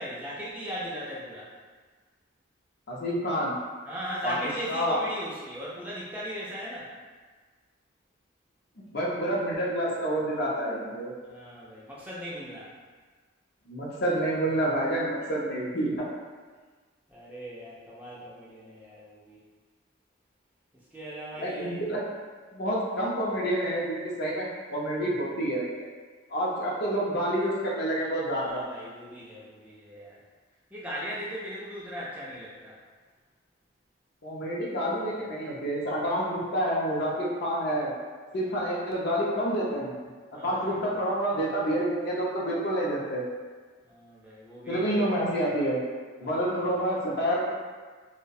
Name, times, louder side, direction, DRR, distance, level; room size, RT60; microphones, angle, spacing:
voice 1, 0.0-1.5 3.9-6.9 11.2-12.7 17.1-19.4 20.9-21.9 28.3-30.2 30.7-32.8 38.4-38.5 40.3-41.0 43.8-45.0 46.2-46.8, equal, 5° right, -8 dB, 0.3 m, -38 dB
voice 2, 2.9-3.6 4.2-4.4 4.7-5.0 8.9-11.1 13.7-16.1 21.4-22.0 22.5-25.7 26.3-28.6 34.2-37.9 38.3-39.9 40.4-43.2 44.7-45.8 46.2-47.4, right 1 dB, 55° left, -4 dB, 0.5 m, -28 dB
2.3 x 2.1 x 2.6 m, 1.4 s
head